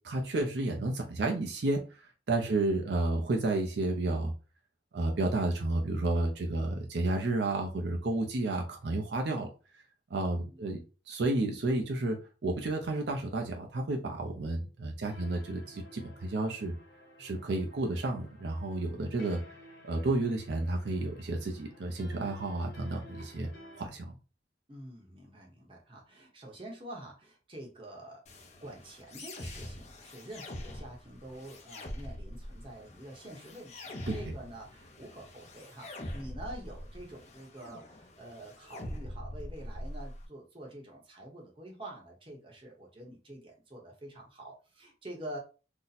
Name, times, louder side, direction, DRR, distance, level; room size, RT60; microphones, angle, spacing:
voice 1, 0.0-2.0 2.3-4.3 4.9-9.5 10.1-16.7 17.2-19.4 19.8-23.5 23.8-24.1 34.1-34.2, right 2 dB, 70° right, 2 dB, 0.5 m, -31 dB
sound 1, 15.1-23.8, left 1 dB, 85° left, 1.1 m, -54 dB
voice 2, 24.7-45.4, right 1 dB, 30° right, -1 dB, 0.8 m, -47 dB
sound 2, 28.3-40.3, left 1 dB, 40° left, 0.5 m, -44 dB
2.7 x 2.1 x 4.0 m, 0.34 s
head